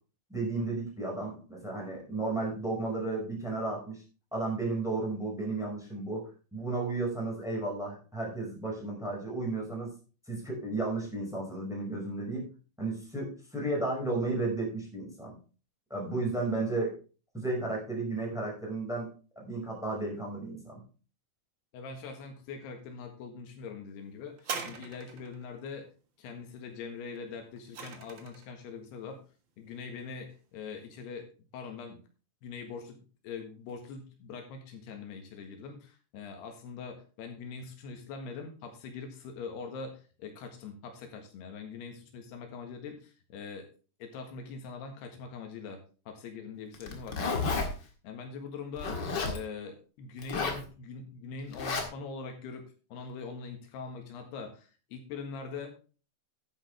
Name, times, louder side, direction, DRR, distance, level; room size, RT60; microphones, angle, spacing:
voice 1, 0.3-4.0 4.3-6.2 6.5-9.9 10.3-12.5 12.8-15.3 15.9-17.0 17.3-19.1 19.3-20.8, right 2 dB, ahead, -2 dB, 4.8 m, -33 dB
voice 2, 21.7-25.9 26.2-29.2 29.6-32.0 32.4-43.7 44.0-45.8 46.1-49.0 49.3-52.6 52.9-55.7, left 5 dB, 80° left, 4 dB, 3.7 m, -43 dB
sound 1, 24.4-25.4 27.1-28.5 29.3-29.4, right 5 dB, 80° right, 1.0 m, -40 dB
Zipper (clothing), 46.7-47.7 48.8-49.4 50.2-50.6 51.5-51.8, left 4 dB, 45° left, 1.5 m, -31 dB
11.0 x 10.0 x 3.4 m, 0.36 s
omnidirectional pair, 4.7 m